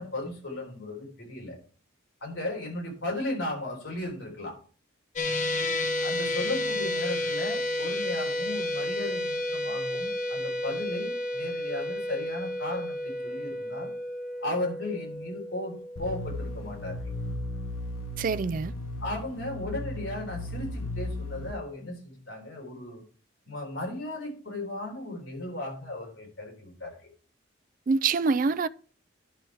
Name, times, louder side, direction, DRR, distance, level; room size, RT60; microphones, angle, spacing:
voice 1, 0.0-1.6 2.2-4.6 6.0-13.9 14.4-17.1 19.0-23.0 23.5-27.0, left 2 dB, 70° left, 3.8 m, -36 dB
sound 1, 5.2-17.5, left 1 dB, 40° left, 0.9 m, -32 dB
sound 2, 16.0-21.5, left 1 dB, 85° left, 0.8 m, -36 dB
voice 2, 18.2-18.7 27.9-28.7, right 4 dB, 45° right, 0.4 m, -25 dB
10.5 x 6.2 x 4.5 m
head